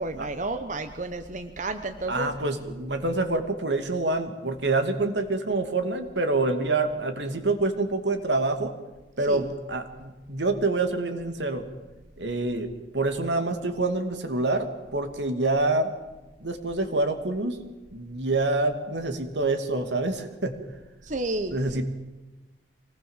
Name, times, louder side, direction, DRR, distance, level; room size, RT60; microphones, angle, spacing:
voice 1, 0.0-2.3 9.3-9.4 21.1-21.8, right 2 dB, 45° right, 8 dB, 1.1 m, -31 dB
voice 2, 2.1-8.7 9.2-11.7 12.2-15.9 16.4-17.6 17.9-20.6 21.5-21.8, right 2 dB, 80° right, 7 dB, 2.5 m, -26 dB
24.5 x 19.0 x 7.4 m, 1.1 s
head